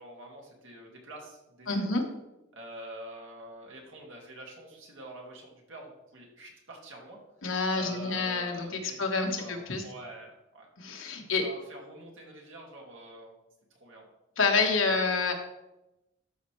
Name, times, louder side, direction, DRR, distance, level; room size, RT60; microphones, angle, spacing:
voice 1, 0.0-1.9 2.5-7.2 7.7-9.1 9.4-10.7 11.2-13.3 13.7-14.1 14.7-15.0, right 1 dB, 70° right, -1 dB, 2.2 m, -47 dB
voice 2, 1.7-2.0 7.4-9.8 10.8-11.5 14.4-15.3, left 4 dB, 80° left, 3 dB, 1.4 m, -28 dB
12.5 x 5.4 x 3.2 m, 0.93 s
head